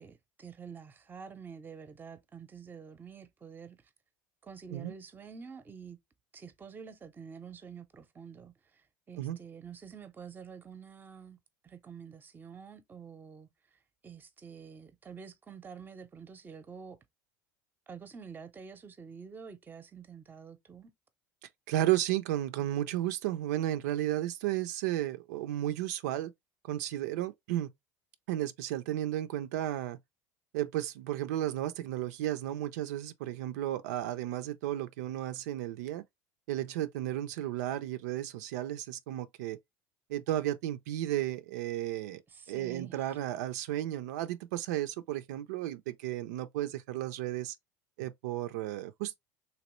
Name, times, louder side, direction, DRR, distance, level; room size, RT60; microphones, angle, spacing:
voice 1, 0.0-3.8 4.4-6.0 6.3-11.4 11.6-13.5 14.0-17.0 17.9-20.9 42.3-43.2, right 6 dB, 20° right, 0.6 m, -48 dB
voice 2, 21.7-26.3 26.6-27.7 28.3-30.0 30.5-36.0 36.5-39.6 40.1-42.2 42.5-47.5 48.0-49.1, right 13 dB, 85° right, 0.4 m, -33 dB
3.0 x 2.9 x 3.0 m
supercardioid pair, 105°, 9 cm